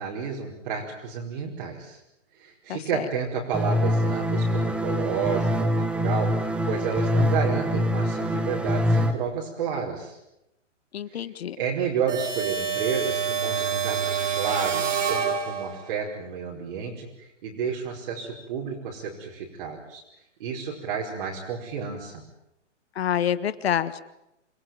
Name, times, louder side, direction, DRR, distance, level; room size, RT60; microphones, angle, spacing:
voice 1, 0.0-2.0 2.3-10.2 11.1-11.3 11.6-20.0 20.4-22.2, right 6 dB, 45° right, -3 dB, 5.1 m, -31 dB
voice 2, 2.7-3.1 10.9-11.6 22.9-24.0, left 9 dB, 55° left, 14 dB, 1.6 m, -27 dB
sound 1, 3.5-9.1, equal, 5° right, 1.1 m, -24 dB
sound 2, 12.1-16.0, right 7 dB, 75° right, 3.0 m, -27 dB
28.0 x 18.0 x 9.4 m, 0.87 s
hypercardioid pair, 150°, 37 cm